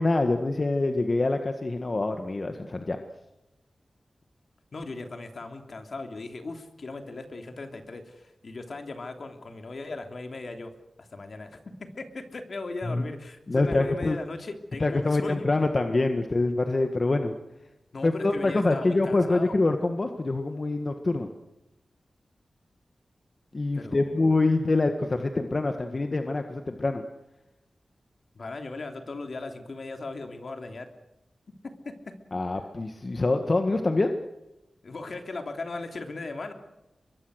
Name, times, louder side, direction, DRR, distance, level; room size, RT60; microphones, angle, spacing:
voice 1, 0.0-3.0 12.9-13.0 13.5-14.2 14.8-17.3 18.0-21.3 23.5-27.0 32.3-34.1, left 2 dB, 45° left, 6 dB, 1.7 m, -25 dB
voice 2, 4.7-10.7 11.0-15.5 17.9-19.6 23.7-24.3 28.3-30.9 31.6-32.2 34.8-36.5, left 3 dB, 65° left, 5 dB, 3.2 m, -38 dB
24.5 x 22.5 x 6.5 m, 0.96 s
wide cardioid pair, 70°, 0 cm